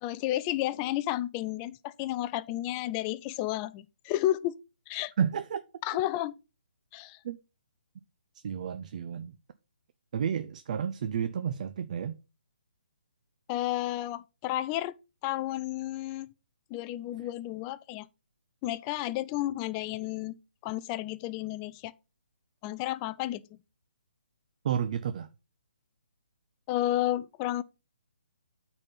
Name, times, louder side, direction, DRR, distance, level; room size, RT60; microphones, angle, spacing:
voice 1, 0.0-4.6 4.9-5.1 5.8-6.4 6.9-7.2 13.5-14.9 15.2-16.3 16.7-18.1 18.6-20.4 20.6-21.9 22.6-23.6 26.7-27.6, left 14 dB, 20° left, 0.4 m, -32 dB
voice 2, 5.2-5.6 7.2-7.4 8.4-9.4 10.1-12.2 24.6-25.3, right 8 dB, 45° right, 0.6 m, -31 dB
8.9 x 4.1 x 5.4 m
hypercardioid pair, 155°, 5 cm